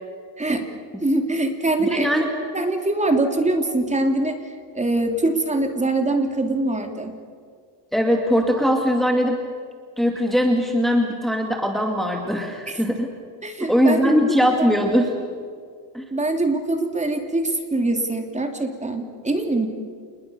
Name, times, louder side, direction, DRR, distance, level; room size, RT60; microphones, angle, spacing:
voice 1, 1.0-2.1 2.5-4.4 4.7-7.1 12.7-12.8 13.4-14.7 16.1-19.7, right 2 dB, 15° right, 4 dB, 3.0 m, -23 dB
voice 2, 1.8-2.3 7.9-9.4 10.0-13.1 13.7-15.1 15.9-16.0, equal, ahead, 2 dB, 2.4 m, -20 dB
28.0 x 21.0 x 6.9 m, 2.1 s
cardioid pair, 110°, 43 cm